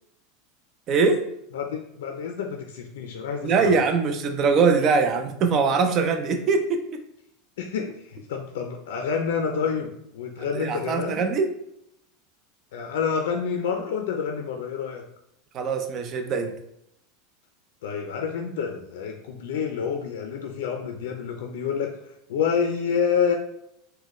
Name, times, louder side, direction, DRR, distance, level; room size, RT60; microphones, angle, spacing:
voice 1, 0.9-1.3 3.4-6.8 10.5-11.5 15.5-16.5, right 4 dB, 40° right, 6 dB, 0.5 m, -22 dB
voice 2, 1.5-3.7 7.6-11.2 12.7-15.0 17.8-23.3, left 6 dB, 80° left, 3 dB, 0.4 m, -28 dB
4.0 x 2.2 x 3.0 m, 0.76 s
supercardioid pair, 110°, 0 cm